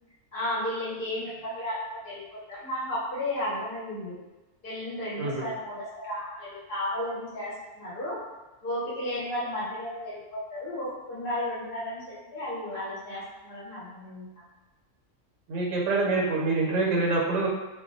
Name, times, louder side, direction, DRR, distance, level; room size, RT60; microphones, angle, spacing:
voice 1, 0.3-4.2 4.6-8.2 8.6-14.4, left 1 dB, 50° left, -7 dB, 0.9 m, -33 dB
voice 2, 15.5-17.5, right 3 dB, 75° right, -3 dB, 0.9 m, -26 dB
2.3 x 2.1 x 2.5 m, 1.1 s
omnidirectional pair, 1.3 m